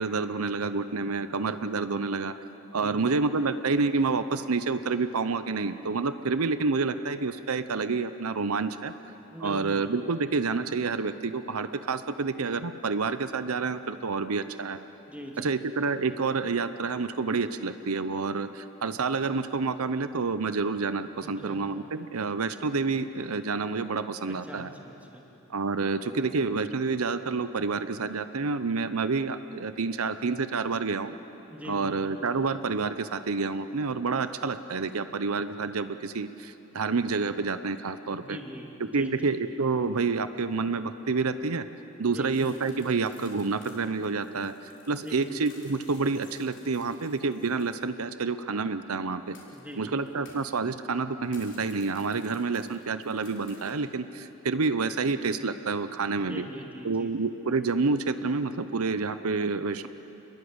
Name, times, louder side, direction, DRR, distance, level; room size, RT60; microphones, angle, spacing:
voice 1, 0.0-2.3 2.7-8.9 9.4-14.8 15.4-24.7 25.5-31.2 31.6-38.4 38.8-41.7 42.0-49.4 49.8-56.5 56.8-59.9, right 4 dB, 85° right, 12 dB, 0.8 m, -28 dB
voice 2, 2.8-3.1 9.3-9.9 15.1-15.6 21.4-21.6 24.2-25.2 31.5-32.0 38.1-39.3 42.1-42.5 45.0-45.3 49.5-50.0 56.2-57.1, equal, 5° right, 0 dB, 2.7 m, -42 dB
sound 1, 42.3-47.9 48.2-48.3 49.3-49.7 50.1-50.7 51.2-53.7, left 5 dB, 55° left, 4.3 m, -56 dB
28.0 x 21.5 x 8.0 m, 3.0 s
head